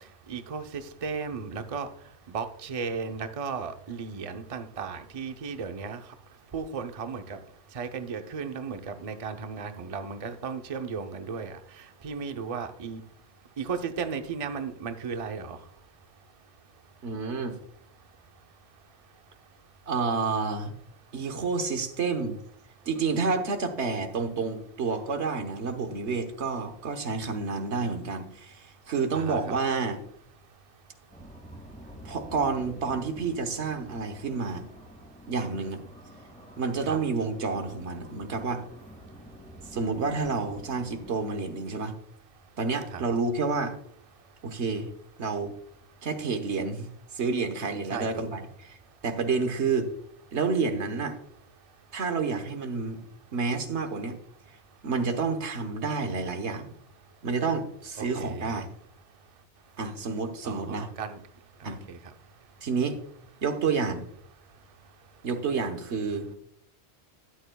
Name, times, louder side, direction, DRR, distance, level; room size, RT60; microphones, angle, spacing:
voice 1, 0.3-1.9 2.3-6.0 6.5-7.4 7.7-11.6 12.0-13.0 13.6-15.6 29.1-29.6 36.9-37.0 42.9-43.0 47.9-48.2 58.0-58.6 60.4-61.2 61.6-62.0, right 5 dB, 40° right, 7 dB, 0.7 m, -35 dB
voice 2, 17.0-17.6 19.9-20.7 21.1-22.4 22.9-30.0 32.0-34.7 35.3-35.8 36.6-38.6 39.7-41.9 42.6-43.8 44.4-44.9 45.2-45.5 46.0-49.9 50.3-51.2 51.9-53.0 53.3-54.2 54.8-56.7 57.2-58.7 59.8-60.9 61.6-61.8 62.6-63.0 63.4-64.1 65.2-66.3, right 4 dB, 90° right, 7 dB, 1.4 m, -29 dB
sound 1, 31.1-41.2, equal, 10° left, 1.8 m, -48 dB
13.0 x 9.2 x 2.3 m, 0.65 s
omnidirectional pair, 1.1 m